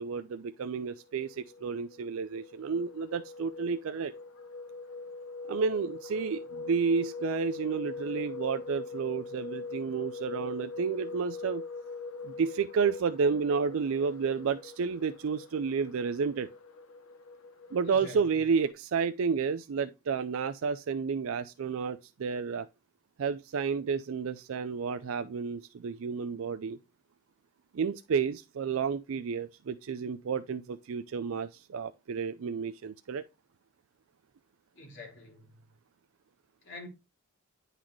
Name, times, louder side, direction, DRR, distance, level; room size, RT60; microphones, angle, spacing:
voice 1, 0.0-4.1 5.5-11.6 12.2-16.5 17.7-22.7 23.2-26.8 27.7-33.2, right 5 dB, 70° right, 0.4 m, -31 dB
sound 1, 1.0-18.7, left 3 dB, 75° left, 0.7 m, -42 dB
voice 2, 17.8-18.4 34.7-35.7 36.6-36.9, left 2 dB, 55° left, 3.0 m, -47 dB
10.0 x 4.1 x 3.1 m
head